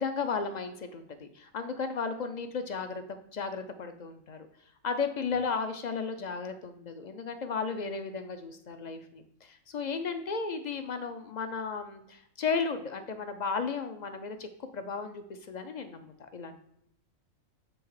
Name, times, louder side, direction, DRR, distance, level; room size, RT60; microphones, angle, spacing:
voice 1, 0.0-4.5 4.8-14.5 14.7-16.6, left 5 dB, 60° left, 8 dB, 0.4 m, -34 dB
7.8 x 3.4 x 4.7 m, 0.76 s
omnidirectional pair, 1.4 m